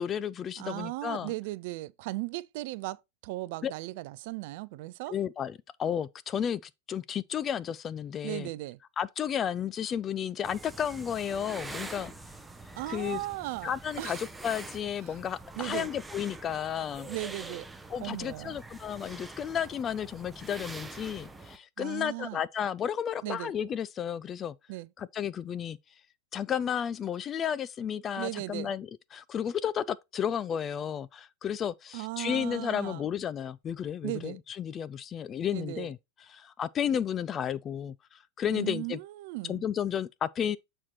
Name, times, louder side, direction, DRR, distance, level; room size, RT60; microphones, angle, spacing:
voice 1, 0.0-1.3 3.6-3.7 5.1-6.6 6.9-8.5 9.0-12.1 12.9-13.2 13.6-17.1 17.9-24.6 25.0-25.8 26.3-36.0 36.3-39.0 39.5-40.6, left 8 dB, 25° left, 0.3 m, -32 dB
voice 2, 0.6-5.1 8.2-8.8 12.8-14.2 15.1-15.2 15.6-15.9 17.1-17.7 18.0-18.6 21.8-22.4 23.2-23.5 24.7-24.9 28.2-28.7 31.9-33.1 34.0-34.4 35.5-35.9 38.5-39.6, right 19 dB, 50° right, 0.4 m, -37 dB
sound 1, 10.4-21.6, right 2 dB, 10° right, 0.6 m, -45 dB
7.2 x 4.4 x 4.4 m
figure-of-eight pair, 90°, 0 cm